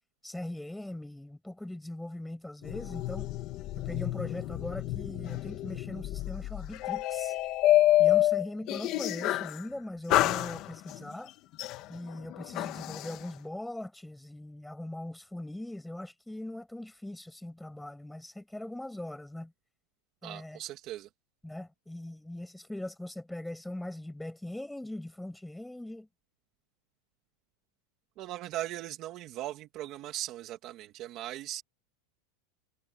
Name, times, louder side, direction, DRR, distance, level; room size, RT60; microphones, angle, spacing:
voice 1, 0.2-3.3 3.8-7.3 8.0-11.3 11.9-19.5 20.2-20.6 21.4-26.1, left 1 dB, 5° left, 6.7 m, -40 dB
sound 1, 2.6-9.6 10.1-11.0 11.6-13.2, left 14 dB, 30° left, 1.6 m, -28 dB
voice 2, 20.2-21.1 28.2-31.6, right 14 dB, 30° right, 2.8 m, -39 dB
supercardioid pair, 175°, 0 cm